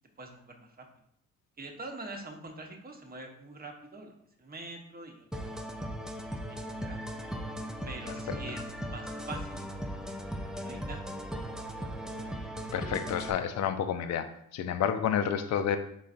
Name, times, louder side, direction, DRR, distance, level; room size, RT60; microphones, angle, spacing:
voice 1, 0.2-0.9 1.6-4.1 4.4-5.3 6.3-7.0 7.8-9.9 10.6-11.2, right 2 dB, 25° right, 3 dB, 1.0 m, -45 dB
sound 1, 5.3-13.3, equal, ahead, 0.4 m, -38 dB
voice 2, 12.7-14.3 14.5-15.8, left 8 dB, 50° left, 8 dB, 0.5 m, -29 dB
5.4 x 3.8 x 2.5 m, 0.72 s
supercardioid pair, 75°, 36 cm